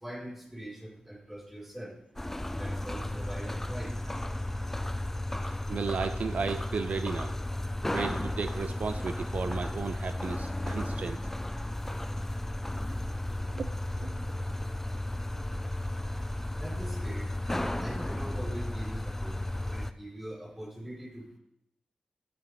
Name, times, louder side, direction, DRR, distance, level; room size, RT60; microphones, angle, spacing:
voice 1, 0.0-1.9 2.6-3.9 16.6-17.3 17.7-19.4 19.6-21.2, right 1 dB, 10° right, -2 dB, 3.6 m, -42 dB
sound 1, 2.2-19.9, left 1 dB, 10° left, 0.6 m, -34 dB
voice 2, 5.5-7.3 7.9-11.2 13.5-13.7 14.0-14.5, right 5 dB, 70° right, 10 dB, 0.5 m, -35 dB
15.5 x 11.0 x 3.2 m, 0.78 s
cardioid pair, 65°, 2 cm